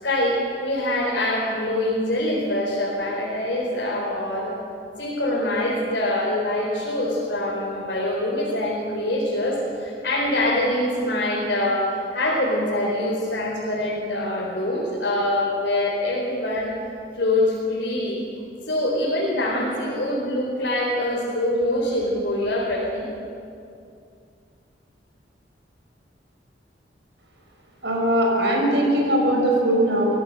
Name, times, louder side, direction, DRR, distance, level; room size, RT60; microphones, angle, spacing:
voice 1, 0.0-4.5 5.0-16.7 17.2-18.2 18.7-23.1, left 1 dB, 70° left, -5 dB, 4.4 m, -24 dB
voice 2, 27.8-30.2, right 1 dB, 75° right, 0 dB, 5.9 m, -20 dB
25.5 x 17.0 x 6.7 m, 2.5 s
head